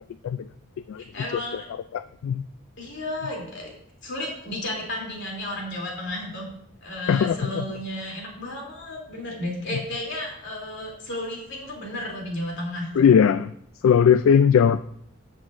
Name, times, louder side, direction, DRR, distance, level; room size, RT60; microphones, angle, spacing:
voice 1, 1.0-1.6 2.8-3.7 4.0-6.5 6.8-13.1, left 1 dB, 60° left, -1 dB, 3.0 m, -33 dB
voice 2, 7.1-7.6 13.0-13.5 13.8-14.8, left 7 dB, 80° left, 12 dB, 0.3 m, -18 dB
13.0 x 7.8 x 2.6 m, 0.70 s
head